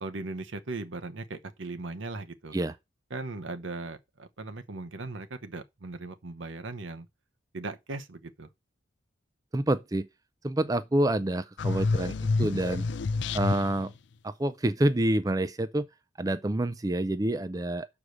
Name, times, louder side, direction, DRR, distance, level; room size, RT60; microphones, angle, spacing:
voice 1, 0.0-2.6 3.1-7.1 7.5-8.5, right 3 dB, 75° right, 0.9 m, -38 dB
voice 2, 9.5-10.1 10.4-12.8 13.3-13.9 14.2-15.9 16.2-17.9, right 1 dB, 20° right, 0.4 m, -27 dB
sound 1, 11.6-13.9, left 3 dB, 65° left, 0.4 m, -28 dB
6.4 x 4.8 x 6.6 m
head